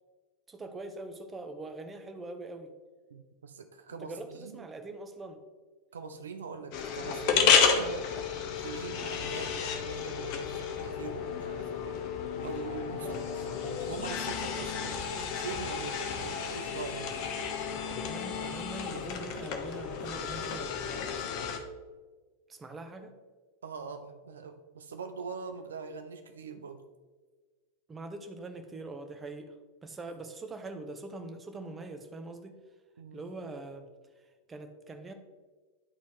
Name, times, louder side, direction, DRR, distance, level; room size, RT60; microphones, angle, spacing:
voice 1, 0.5-2.7 4.0-5.4 7.8-8.1 13.0-13.3 18.0-21.2 22.5-23.1 27.9-29.6 29.8-32.6 33.1-33.9 34.2-35.1, right 2 dB, 20° right, 6 dB, 0.8 m, -43 dB
voice 2, 3.1-4.7 5.9-8.2 8.6-12.0 12.4-13.2 13.6-17.2 23.6-26.9 33.0-33.2, right 5 dB, 70° right, 8 dB, 0.4 m, -43 dB
sound 1, 6.7-21.6, left 6 dB, 50° left, 0.9 m, -31 dB
11.0 x 4.2 x 3.1 m, 1.4 s
figure-of-eight pair, 90°, 0 cm